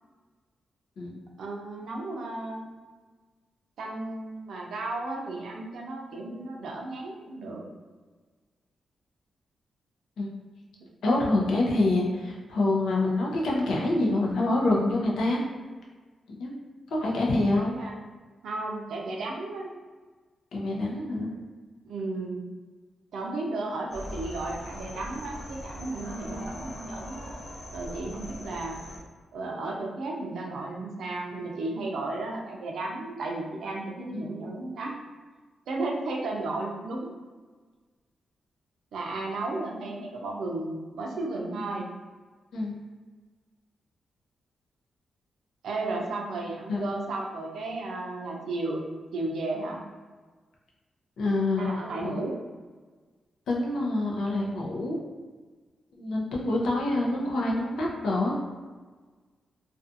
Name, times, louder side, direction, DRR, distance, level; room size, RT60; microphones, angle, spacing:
voice 1, 1.4-2.7 3.8-7.6 17.5-17.9 18.4-19.7 21.9-22.4 23.1-27.3 27.7-28.8 29.3-34.9 35.7-37.1 38.9-41.9 45.6-48.9 49.1-49.8 51.6-52.3, right 2 dB, 85° right, 0 dB, 0.5 m, -34 dB
voice 2, 11.0-15.4 16.3-16.5 16.9-17.8 20.5-21.3 34.1-34.3 42.5-42.8 46.7-46.9 51.2-51.7 52.0-52.2 53.5-55.0 56.0-58.3, left 2 dB, 90° left, -3 dB, 0.6 m, -26 dB
sound 1, 23.9-29.0, equal, 45° left, 0.6 m, -40 dB
2.5 x 2.3 x 2.6 m, 1.4 s
cardioid pair, 110°, 0 cm